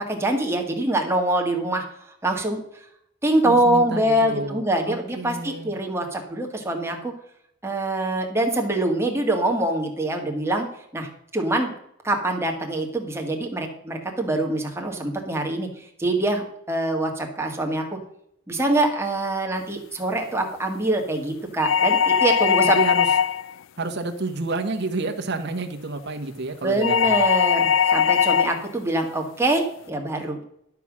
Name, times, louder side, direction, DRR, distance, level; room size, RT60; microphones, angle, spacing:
voice 1, 0.0-2.6 3.2-7.1 7.6-10.7 10.9-11.7 12.0-18.0 18.5-22.8 26.6-30.4, right 1 dB, 15° right, 2 dB, 1.9 m, -24 dB
voice 2, 3.4-5.8 22.6-23.1 23.8-27.2, right 3 dB, 60° right, 5 dB, 1.2 m, -30 dB
sound 1, 21.6-23.5 26.8-28.6, left 7 dB, 70° left, 0.4 m, -20 dB
11.5 x 5.9 x 6.1 m, 0.73 s
head